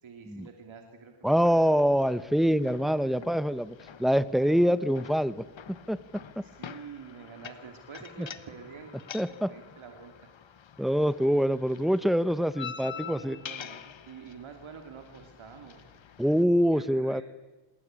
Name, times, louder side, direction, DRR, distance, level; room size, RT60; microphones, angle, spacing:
voice 1, 0.0-1.7 3.0-3.2 4.4-4.6 6.2-10.3 12.9-15.9 16.2-16.3 16.5-17.2, right 6 dB, 90° right, 3 dB, 2.8 m, -48 dB
voice 2, 1.2-3.7 4.0-6.0 6.4-6.5 8.2-8.3 9.1-9.5 10.8-13.4 16.2-17.2, equal, ahead, 14 dB, 1.0 m, -25 dB
sound 1, 1.4-16.4, left 8 dB, 75° left, 1.3 m, -47 dB
27.0 x 20.5 x 8.9 m, 1.2 s
wide cardioid pair, 80°, 46 cm